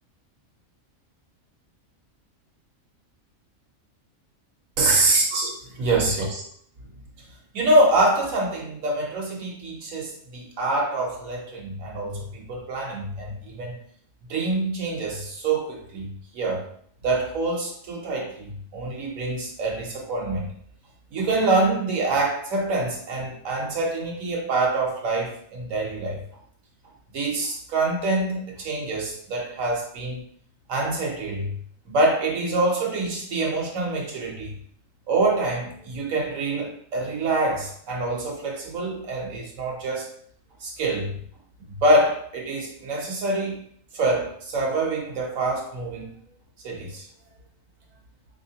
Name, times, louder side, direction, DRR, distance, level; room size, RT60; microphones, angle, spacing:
voice 1, 4.8-6.4 7.5-13.8 14.3-16.7 17.0-20.5 21.1-26.2 27.1-30.2 30.7-31.6 31.9-34.6 35.1-40.1 40.6-41.2 41.6-43.6 43.9-46.1 46.6-47.1, right 2 dB, 75° right, -1 dB, 1.3 m, -25 dB
3.5 x 3.1 x 2.8 m, 0.63 s
omnidirectional pair, 1.4 m